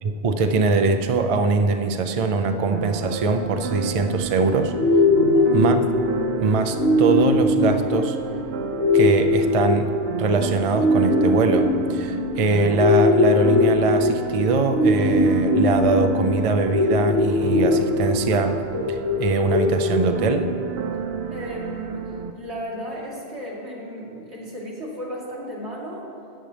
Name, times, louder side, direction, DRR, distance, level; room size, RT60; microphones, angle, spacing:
voice 1, 0.0-4.7 5.5-5.8 6.4-8.2 8.9-9.9 10.2-18.5 18.9-20.5, right 3 dB, 45° right, 7 dB, 0.5 m, -22 dB
sound 1, 2.7-22.3, right 7 dB, 70° right, 0.8 m, -32 dB
sound 2, 4.7-20.7, left 2 dB, 85° left, 1.2 m, -21 dB
voice 2, 5.3-5.7 21.3-26.1, equal, 85° right, -5 dB, 2.5 m, -35 dB
14.0 x 8.9 x 3.4 m, 2.5 s
omnidirectional pair, 1.1 m